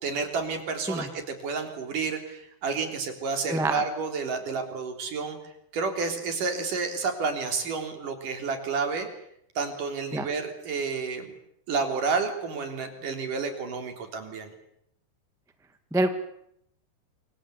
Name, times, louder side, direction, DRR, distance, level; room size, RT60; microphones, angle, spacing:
voice 1, 0.0-5.4 5.7-9.1 9.6-11.3 11.7-14.5, right 4 dB, 55° right, 6 dB, 4.9 m, -30 dB
voice 2, 3.5-3.8 10.1-10.3 15.9-16.1, right 2 dB, 5° right, 8 dB, 0.4 m, -26 dB
27.5 x 24.0 x 8.4 m, 0.74 s
omnidirectional pair, 4.6 m